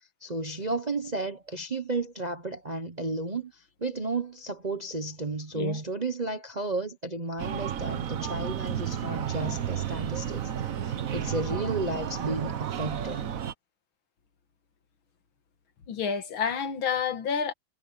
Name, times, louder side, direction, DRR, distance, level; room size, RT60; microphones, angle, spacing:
voice 1, 0.2-10.5 10.8-13.2, right 2 dB, 35° right, 0.7 m, -33 dB
Breathing, 7.4-13.5, right 9 dB, 50° right, 1.2 m, -32 dB
voice 2, 15.9-17.5, left 6 dB, 75° left, 2.3 m, -29 dB
omnidirectional pair, 2.2 m